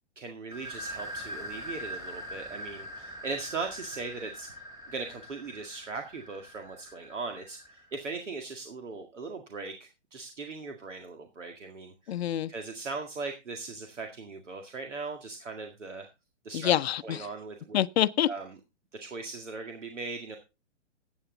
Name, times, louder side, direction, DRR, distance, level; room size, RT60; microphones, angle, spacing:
voice 1, 0.2-12.1 12.5-16.1 16.4-16.7 17.0-17.8 18.3-18.6 18.9-20.4, right 4 dB, 80° right, 2.0 m, -39 dB
sound 1, 0.5-8.0, equal, 10° right, 2.2 m, -43 dB
voice 2, 12.1-12.5 16.5-17.3 17.7-18.3, left 11 dB, 60° left, 0.7 m, -26 dB
14.5 x 8.7 x 3.9 m
hypercardioid pair, 125°, 36 cm